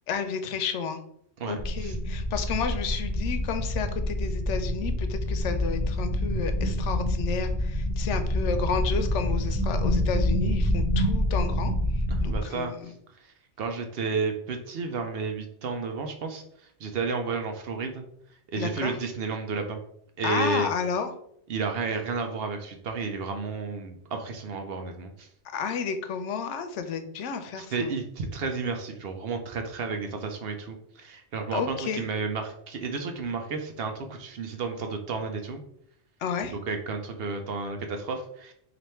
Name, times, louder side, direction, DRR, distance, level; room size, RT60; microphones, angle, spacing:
voice 1, 0.1-1.0 1.5-11.7 12.2-12.9 18.6-19.0 20.2-21.1 25.5-27.9 31.5-32.1 36.2-36.6, left 6 dB, 90° left, 8 dB, 0.9 m, -31 dB
voice 2, 1.4-2.0 12.1-12.7 13.6-16.4 16.8-18.0 18.5-19.8 20.2-20.7 21.5-25.3 27.6-35.6 36.7-38.5, right 4 dB, 65° right, 5 dB, 0.7 m, -32 dB
sound 1, 1.6-12.4, equal, ahead, 1.1 m, -27 dB
3.3 x 2.5 x 4.2 m, 0.69 s
omnidirectional pair, 1.2 m